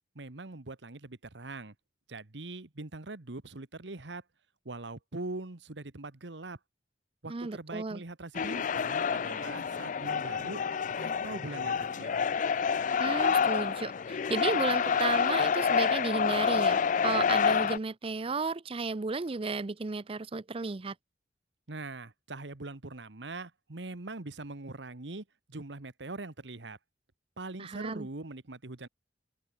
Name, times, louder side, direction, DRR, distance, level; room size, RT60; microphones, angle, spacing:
voice 1, 0.1-1.7 2.1-4.2 4.6-6.6 7.2-10.6 11.0-12.2 21.7-26.8 27.4-28.9, right 2 dB, 90° right, 1.5 m, -42 dB
voice 2, 7.3-8.0 13.0-20.9 27.6-28.1, right 4 dB, 30° right, 0.6 m, -33 dB
sound 1, 8.3-17.8, left 6 dB, 45° left, 0.4 m, -28 dB
open air
head